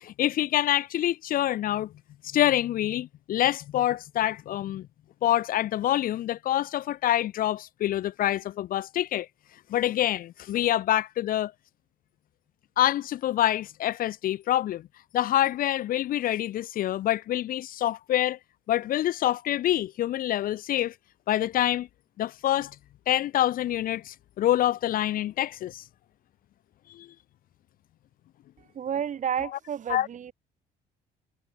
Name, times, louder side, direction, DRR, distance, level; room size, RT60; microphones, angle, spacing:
voice 1, 0.0-1.9 2.2-4.9 5.2-9.3 9.7-11.5 12.8-14.8 15.1-18.4 18.7-20.9 21.3-21.9 22.2-22.7 23.1-25.8 26.9-27.1 29.9-30.1, left 13 dB, 55° left, 0.6 m, -26 dB
voice 2, 28.7-30.3, right 8 dB, 45° right, 6.9 m, -31 dB
cardioid pair, 110°, 17 cm